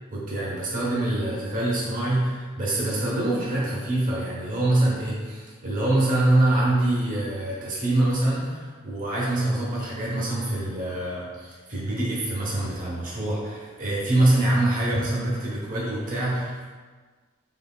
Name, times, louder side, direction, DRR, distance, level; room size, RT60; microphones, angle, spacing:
voice 1, 0.1-16.7, right 1 dB, 40° right, -6 dB, 1.0 m, -25 dB
4.6 x 3.9 x 2.3 m, 1.4 s
head